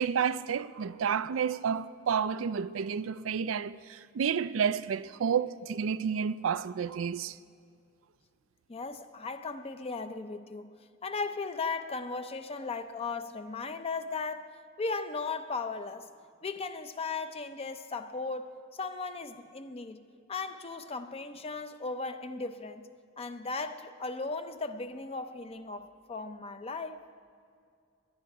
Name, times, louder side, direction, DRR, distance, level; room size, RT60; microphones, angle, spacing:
voice 1, 0.0-7.4, right 7 dB, 85° right, 0.4 m, -30 dB
voice 2, 8.7-10.7 11.0-16.1 16.4-20.0 20.3-22.8 23.2-27.0, left 4 dB, 30° left, 0.6 m, -37 dB
19.5 x 11.0 x 4.8 m
head